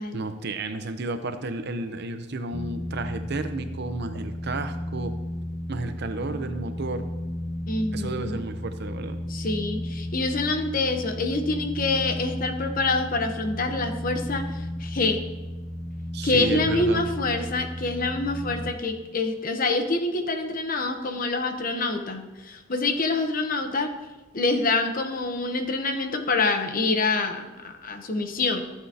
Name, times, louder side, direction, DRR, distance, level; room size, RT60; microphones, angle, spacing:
voice 1, 0.1-5.1 5.7-7.1 7.9-9.2 16.1-17.0, right 2 dB, 55° right, 9 dB, 0.7 m, -32 dB
sound 1, 2.5-18.7, left 1 dB, 15° left, 0.8 m, -34 dB
voice 2, 7.7-8.4 9.3-15.2 16.2-23.9 24.3-28.6, left 3 dB, 45° left, 7 dB, 0.9 m, -26 dB
14.5 x 7.8 x 2.8 m, 1.1 s
head